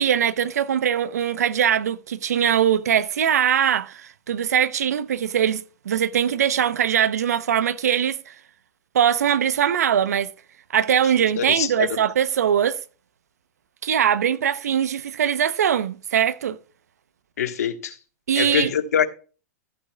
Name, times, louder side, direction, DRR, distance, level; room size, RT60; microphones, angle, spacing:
voice 1, 0.0-8.3 8.9-10.3 10.7-12.8 13.8-16.6 18.3-18.7, right 9 dB, 75° right, 0.8 m, -21 dB
voice 2, 11.2-11.9 17.4-18.0 18.4-19.1, left 8 dB, 75° left, 1.4 m, -24 dB
14.5 x 8.6 x 2.3 m
hypercardioid pair, 115°, 9 cm